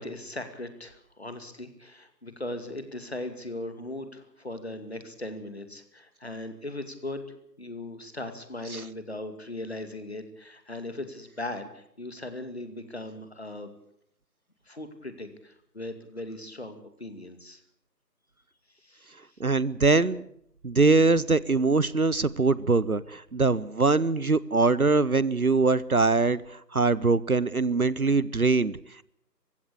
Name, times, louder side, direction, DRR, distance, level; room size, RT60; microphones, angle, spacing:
voice 1, 0.0-7.3 7.6-13.7 14.7-17.6 18.8-19.1, left 1 dB, 40° left, 9 dB, 2.4 m, -38 dB
voice 2, 19.4-20.2 20.6-28.8, right 3 dB, 60° right, 20 dB, 0.8 m, -23 dB
21.5 x 16.0 x 8.3 m, 0.71 s
figure-of-eight pair, 170°, 49 cm